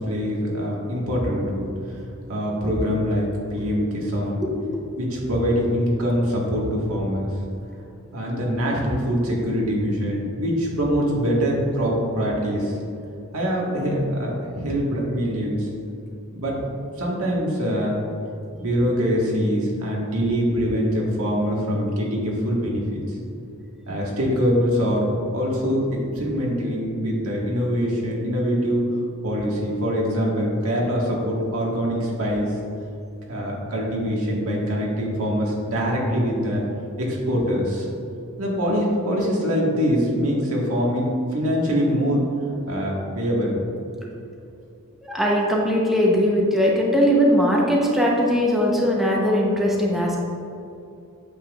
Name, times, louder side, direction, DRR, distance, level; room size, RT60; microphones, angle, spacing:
voice 1, 0.1-1.7 2.3-3.2 3.5-4.4 5.0-7.3 8.1-12.7 13.3-15.7 16.3-16.5 17.0-17.9 18.6-23.0 23.9-25.1 25.3-28.9 29.2-32.5 33.3-36.6 37.0-37.8 38.4-42.2 42.7-43.6, equal, 85° right, -3 dB, 1.7 m, -23 dB
voice 2, 4.4-4.8 45.1-50.2, equal, ahead, -4 dB, 0.8 m, -20 dB
8.6 x 7.2 x 2.4 m, 2.7 s
head